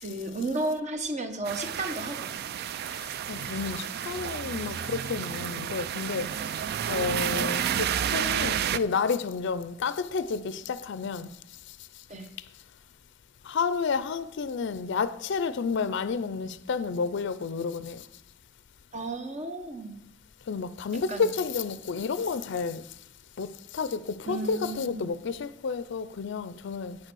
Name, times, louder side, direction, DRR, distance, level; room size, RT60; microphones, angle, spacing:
voice 1, 0.0-2.4 12.1-12.3 18.9-20.0 21.1-21.3 24.2-25.1, right 2 dB, 35° right, 1.1 m, -33 dB
sound 1, 1.5-8.8, right 9 dB, 50° right, 0.3 m, -31 dB
voice 2, 3.3-6.3 6.9-11.3 13.5-18.0 20.5-22.8 23.4-23.5 23.7-27.0, left 5 dB, 60° left, 0.4 m, -30 dB
8.6 x 6.5 x 6.2 m
head